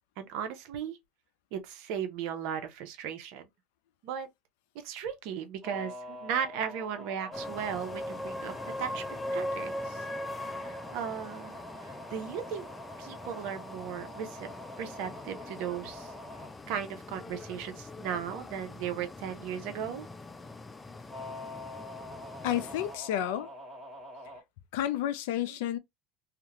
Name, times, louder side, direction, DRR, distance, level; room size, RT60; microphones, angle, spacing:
voice 1, 0.2-1.0 1.5-3.4 4.0-4.3 4.8-8.5 8.8-10.0 10.4-12.7 13.0-14.5 14.8-16.1 16.7-20.1 25.5-25.6, right 8 dB, 70° right, 0.6 m, -36 dB
sound 1, 5.6-16.5 21.1-24.4, left 1 dB, 10° right, 1.1 m, -45 dB
sound 2, 7.3-23.0, left 1 dB, 15° left, 0.4 m, -41 dB
voice 2, 22.4-23.5 24.7-25.8, left 11 dB, 80° left, 0.4 m, -30 dB
2.3 x 2.1 x 2.9 m
supercardioid pair, 105°, 0 cm